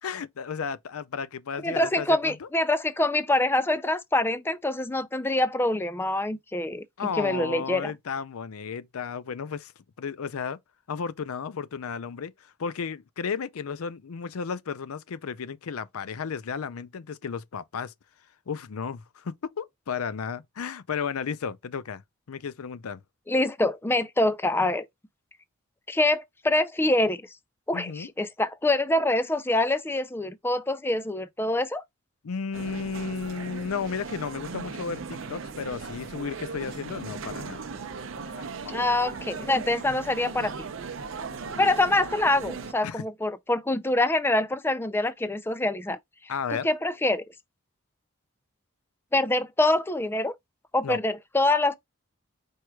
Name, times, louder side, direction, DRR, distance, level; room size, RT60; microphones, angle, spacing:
voice 1, 0.0-2.5 7.0-9.7 10.0-10.6 10.9-17.9 18.5-22.0 22.3-23.0 27.7-28.1 32.2-37.6 38.4-38.8 42.8-43.0 46.3-46.7 50.8-51.0, left 6 dB, 85° left, 0.5 m, -33 dB
voice 2, 1.6-7.9 23.3-24.9 25.9-27.2 27.7-31.8 38.7-40.5 41.6-46.0 46.5-47.2 49.1-50.3 50.7-51.7, left 2 dB, 10° left, 0.4 m, -25 dB
sound 1, 32.5-42.7, right 4 dB, 65° right, 0.7 m, -38 dB
4.6 x 4.6 x 2.3 m
head